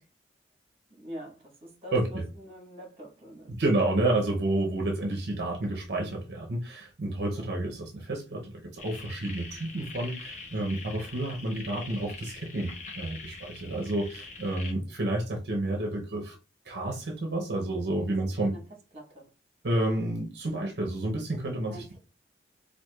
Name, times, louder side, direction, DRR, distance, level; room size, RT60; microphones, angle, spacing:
voice 1, 0.9-3.6 7.3-7.5 18.0-18.1 18.4-18.6 18.9-19.3 21.7-22.0, equal, 30° right, 1.2 m, -45 dB
voice 2, 1.9-2.2 3.6-16.4 16.6-18.5 19.6-21.8, right 2 dB, 65° right, 0.6 m, -30 dB
sound 1, 8.8-14.7, left 4 dB, 40° left, 0.7 m, -44 dB
4.4 x 2.4 x 2.3 m
head